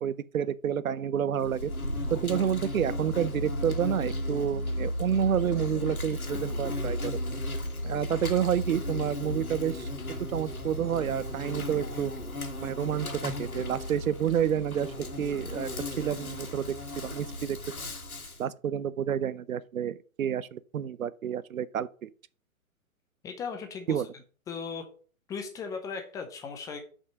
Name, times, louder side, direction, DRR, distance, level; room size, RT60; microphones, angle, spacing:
voice 1, 0.0-1.7 2.1-7.2 7.8-9.9 10.3-12.1 12.6-15.7 16.0-16.7 17.0-17.6 18.4-22.1 23.9-24.1, right 9 dB, 75° right, 0.6 m, -29 dB
Insect, 1.4-18.4, left 1 dB, 85° left, 1.9 m, -34 dB
voice 2, 23.2-24.0 24.5-24.8 25.3-26.8, left 5 dB, 10° left, 0.6 m, -37 dB
6.2 x 5.4 x 6.0 m
figure-of-eight pair, 125°, 42 cm